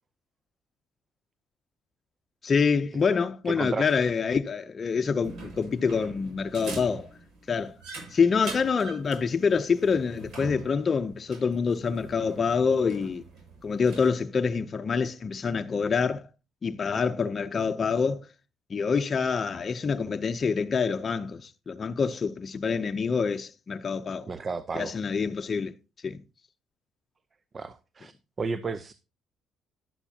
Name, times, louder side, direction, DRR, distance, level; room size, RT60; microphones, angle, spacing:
voice 1, 2.4-7.1 7.5-7.8 8.1-13.2 13.6-16.2 16.6-18.3 18.7-24.3 24.7-25.7 26.0-26.2, left 5 dB, 40° left, 0.7 m, -26 dB
voice 2, 3.4-4.0 24.3-25.0 27.5-28.9, right 4 dB, 35° right, 0.7 m, -33 dB
sound 1, 5.2-14.1, right 3 dB, 65° right, 7.0 m, -44 dB
11.5 x 9.6 x 2.9 m
cardioid pair, 85°, 0 cm